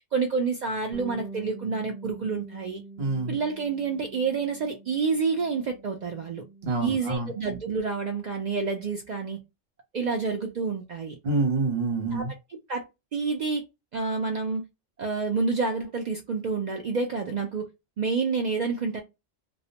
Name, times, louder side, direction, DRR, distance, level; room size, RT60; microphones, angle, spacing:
voice 1, 0.1-2.8 3.3-6.4 6.8-9.4 9.9-11.2 12.1-12.2 12.7-12.8 13.1-13.6 13.9-14.6 15.0-17.7 18.0-19.0, right 4 dB, 75° right, 0.4 m, -28 dB
Bass guitar, 0.9-7.2, right 3 dB, 40° left, 0.7 m, -45 dB
voice 2, 3.0-3.4 6.6-7.3 11.2-12.3, right 3 dB, 55° right, 1.0 m, -27 dB
2.3 x 2.1 x 2.7 m
omnidirectional pair, 1.3 m